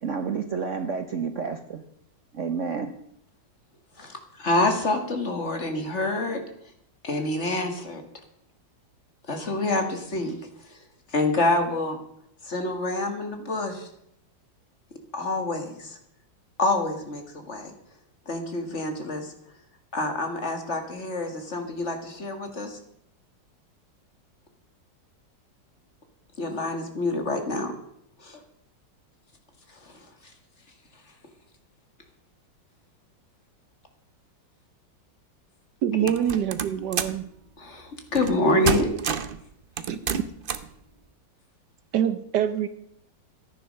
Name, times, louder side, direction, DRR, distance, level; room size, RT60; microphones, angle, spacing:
voice 1, 0.0-1.8 2.3-2.9, right 5 dB, 55° right, 7 dB, 1.0 m, -30 dB
voice 2, 4.0-6.4 7.0-8.0 9.3-10.3 10.7-10.8 11.1-12.0 12.4-13.9 15.1-16.0 16.6-17.7 18.3-19.3 19.9-22.8 26.4-27.7 28.2-28.4 29.7-30.1 36.0-36.1 37.6-38.9, left 2 dB, 40° left, 5 dB, 2.1 m, -27 dB
voice 3, 35.8-37.3 39.9-40.0 41.9-42.7, right 9 dB, 70° right, 12 dB, 1.3 m, -25 dB
sound 1, 36.1-37.2 38.1-38.4 38.6-39.4 39.8-40.7, right 7 dB, 85° right, 0.4 m, -28 dB
14.0 x 9.9 x 6.5 m, 0.73 s
omnidirectional pair, 2.0 m